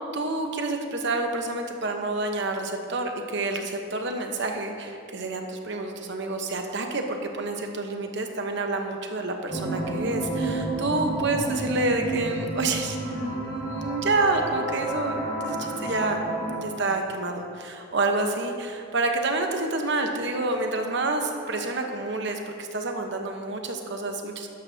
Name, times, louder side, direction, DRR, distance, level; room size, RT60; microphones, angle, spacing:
voice 1, 0.1-15.2 15.4-16.2 16.5-24.5, right 2 dB, 55° right, 4 dB, 0.9 m, -28 dB
sound 1, 9.5-16.5, right 2 dB, 15° left, 1.7 m, -30 dB
13.0 x 10.5 x 2.8 m, 2.4 s
head